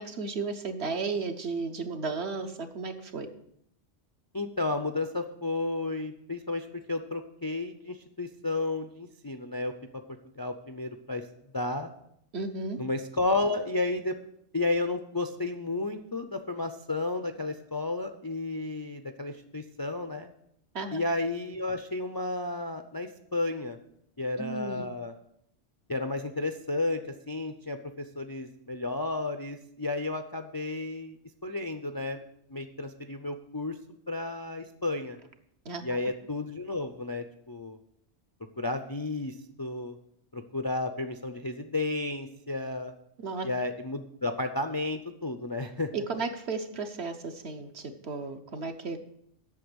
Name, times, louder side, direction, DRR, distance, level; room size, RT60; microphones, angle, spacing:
voice 1, 0.0-3.3 12.3-12.8 20.7-21.0 24.4-24.9 35.6-35.8 43.2-43.5 45.9-49.0, right 4 dB, 65° right, 6 dB, 1.3 m, -34 dB
voice 2, 4.3-10.0 10.4-11.2 11.5-11.9 12.8-14.1 14.5-20.3 20.9-23.8 24.2-25.1 25.9-27.0 27.3-31.2 31.4-32.2 32.5-33.8 34.1-35.2 35.8-37.8 38.6-40.0 40.3-42.9 43.4-45.9, left 2 dB, 30° left, 7 dB, 0.4 m, -32 dB
8.4 x 6.8 x 7.9 m, 0.74 s
omnidirectional pair, 1.2 m